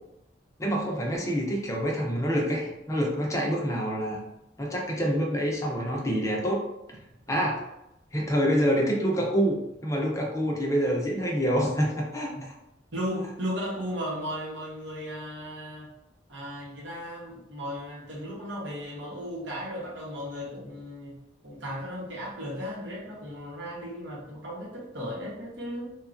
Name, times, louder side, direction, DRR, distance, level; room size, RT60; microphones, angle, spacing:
voice 1, 0.6-4.2 4.6-6.6 6.9-7.0 7.3-7.7 8.1-9.6 9.8-12.3, equal, 15° left, -2 dB, 0.5 m, -26 dB
voice 2, 12.9-15.9 16.3-21.2 21.4-25.9, equal, 80° right, -4 dB, 0.9 m, -35 dB
3.1 x 2.2 x 2.4 m, 0.86 s
head